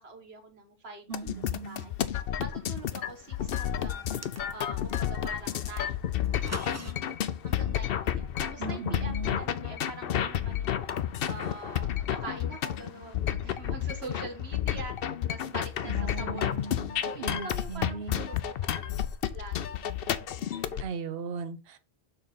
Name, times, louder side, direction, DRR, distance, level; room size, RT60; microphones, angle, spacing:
voice 1, 0.0-1.3 1.5-1.9 2.4-4.2 4.5-6.1 7.4-10.8 11.2-16.5 17.0-19.0 19.3-19.8 20.4-20.8, right 3 dB, 85° right, 1.7 m, -44 dB
sound 1, 1.1-20.8, left 10 dB, 70° left, 0.8 m, -31 dB
voice 2, 1.1-1.9 8.6-9.4 15.8-18.3 20.5-21.8, right 4 dB, 70° right, 1.0 m, -38 dB
sound 2, 4.0-4.9 6.2-6.9, right 2 dB, 20° right, 0.6 m, -41 dB
6.8 x 3.9 x 5.4 m
omnidirectional pair, 1.0 m